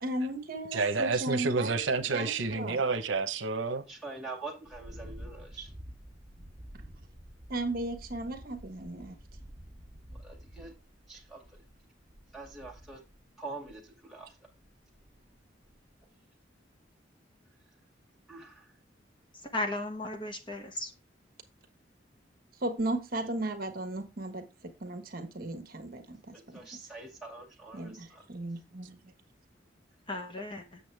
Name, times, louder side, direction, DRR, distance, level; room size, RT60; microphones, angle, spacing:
voice 1, 0.0-1.8 2.1-2.8 5.6-5.7 7.5-9.2 22.6-26.6 27.7-29.0, right 2 dB, 50° right, 1.2 m, -36 dB
voice 2, 0.7-3.8, right 4 dB, 85° right, 0.8 m, -29 dB
voice 3, 3.9-5.7 10.1-10.7 11.1-11.4 12.3-13.0 13.4-14.4 18.3-18.7 26.3-28.2, right 3 dB, ahead, 2.1 m, -44 dB
sound 1, 4.7-13.2 13.7-13.9 14.5-15.4 15.7-16.1, equal, 20° right, 1.5 m, -49 dB
voice 4, 19.4-20.9 30.1-30.8, left 2 dB, 25° left, 1.0 m, -35 dB
8.0 x 6.9 x 3.3 m
head